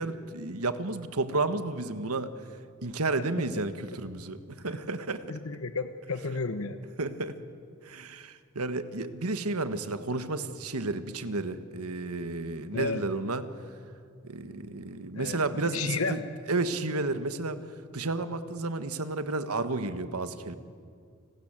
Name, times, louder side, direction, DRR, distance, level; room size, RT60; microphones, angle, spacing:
voice 1, 0.0-2.3 2.8-5.2 7.0-7.4 7.8-13.4 14.2-16.2 16.5-17.6 17.9-20.5, right 3 dB, 85° right, 10 dB, 1.6 m, -32 dB
voice 2, 5.3-6.8 12.7-13.0 15.2-16.3, left 4 dB, 70° left, 9 dB, 1.1 m, -32 dB
30.0 x 20.0 x 9.0 m, 2.3 s
head